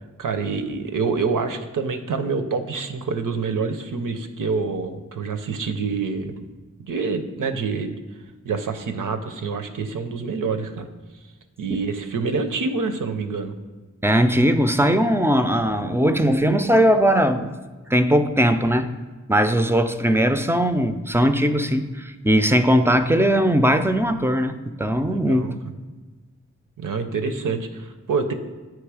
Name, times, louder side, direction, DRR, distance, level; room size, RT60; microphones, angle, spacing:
voice 1, 0.2-6.5 6.8-8.0 8.4-10.9 11.6-13.5 25.0-25.5 26.8-28.3, right 4 dB, 80° right, 8 dB, 0.6 m, -26 dB
voice 2, 14.0-17.5 17.9-18.9 19.3-25.4, equal, 10° right, 9 dB, 0.3 m, -19 dB
8.7 x 3.1 x 4.7 m, 1.3 s
wide cardioid pair, 75°, 32 cm